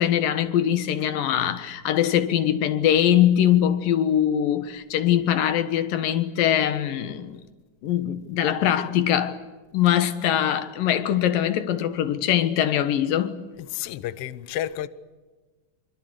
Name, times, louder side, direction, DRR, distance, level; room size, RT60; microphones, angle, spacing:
voice 1, 0.0-7.4 7.8-9.4 9.7-13.4, left 10 dB, 85° left, 3.1 m, -22 dB
voice 2, 13.6-14.9, left 12 dB, 65° left, 1.5 m, -31 dB
25.5 x 25.0 x 8.0 m
omnidirectional pair, 3.8 m